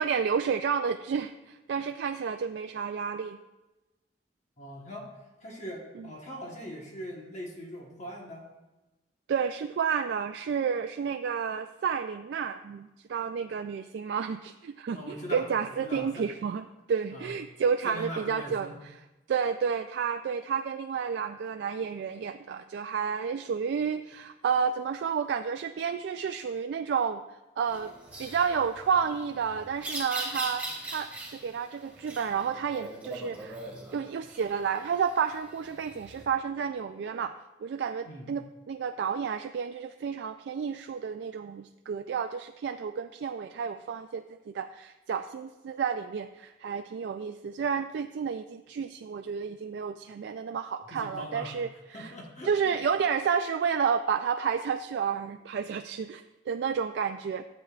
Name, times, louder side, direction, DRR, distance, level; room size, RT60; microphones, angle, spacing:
voice 1, 0.0-3.4 6.0-6.1 9.3-18.7 19.3-27.2 27.6-27.9 28.2-33.6 33.9-37.3 37.6-52.1 52.4-57.4, right 6 dB, 75° right, 7 dB, 0.3 m, -31 dB
voice 2, 4.6-5.1 5.4-8.5 14.9-16.3 17.1-17.3 17.8-18.8 38.0-38.3 50.9-51.6 51.9-52.8, equal, 45° left, -1 dB, 1.3 m, -41 dB
sound 1, 27.7-36.2, right 1 dB, 10° right, 2.4 m, -41 dB
13.0 x 8.0 x 2.4 m, 1.0 s
head